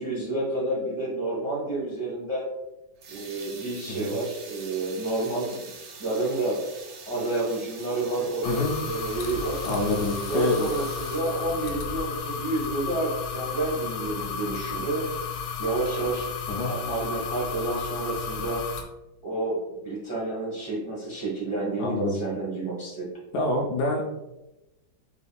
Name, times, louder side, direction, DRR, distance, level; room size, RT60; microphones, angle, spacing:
voice 1, 0.0-2.5 3.1-5.6 6.0-6.6 7.1-9.7 10.3-15.1 15.6-16.3 16.6-18.6 19.2-23.1, right 2 dB, 20° right, -6 dB, 0.7 m, -29 dB
sound 1, 3.0-11.7, right 4 dB, 75° right, 0.7 m, -44 dB
sound 2, 8.4-18.8, left 6 dB, 90° left, 1.5 m, -33 dB
voice 2, 9.6-10.7 16.5-16.7 21.8-22.1 23.3-24.0, left 2 dB, 70° left, 0 dB, 1.0 m, -26 dB
4.6 x 3.6 x 2.2 m, 0.99 s
omnidirectional pair, 2.1 m